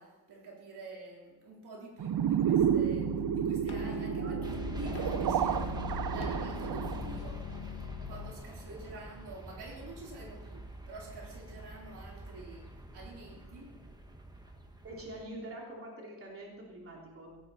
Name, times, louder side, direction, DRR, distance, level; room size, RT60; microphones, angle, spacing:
voice 1, 0.0-7.5 8.0-13.8, right 2 dB, 80° right, -2 dB, 4.1 m, -48 dB
sound 1, 2.0-7.2, right 9 dB, 65° right, 0.8 m, -31 dB
sound 2, 2.6-8.3, left 8 dB, 70° left, 1.6 m, -41 dB
sound 3, 4.4-15.2, right 2 dB, 10° right, 1.3 m, -45 dB
voice 2, 8.7-9.0 14.8-17.4, right 1 dB, 35° right, -2 dB, 3.1 m, -45 dB
17.0 x 16.0 x 4.3 m, 1.2 s
wide cardioid pair, 155°, 39 cm